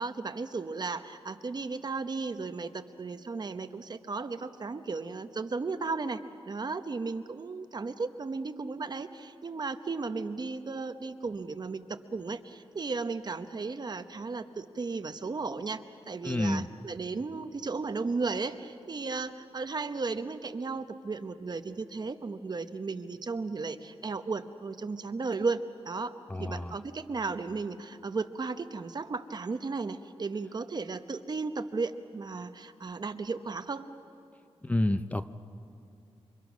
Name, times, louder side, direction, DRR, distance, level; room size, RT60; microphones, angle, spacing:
voice 1, 0.0-11.8 12.1-25.6 25.8-33.9, right 4 dB, 40° right, 10 dB, 0.9 m, -35 dB
voice 2, 16.2-16.7 26.3-26.7 34.6-35.3, left 1 dB, 15° left, 10 dB, 0.6 m, -29 dB
28.5 x 25.5 x 6.2 m, 2.6 s
wide cardioid pair, 135°, 11 cm